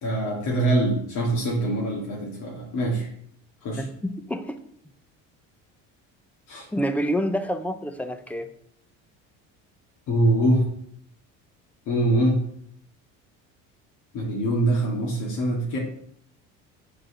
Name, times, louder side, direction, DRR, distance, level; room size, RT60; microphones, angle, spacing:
voice 1, 0.0-3.1 3.6-3.9 6.5-6.7 10.1-10.7 11.9-12.4 14.1-15.8, right 1 dB, 60° left, -3 dB, 2.3 m, -23 dB
voice 2, 3.8-4.6 6.7-8.5, equal, 5° left, 9 dB, 0.8 m, -28 dB
8.5 x 4.8 x 6.4 m, 0.68 s
cardioid pair, 130°, 34 cm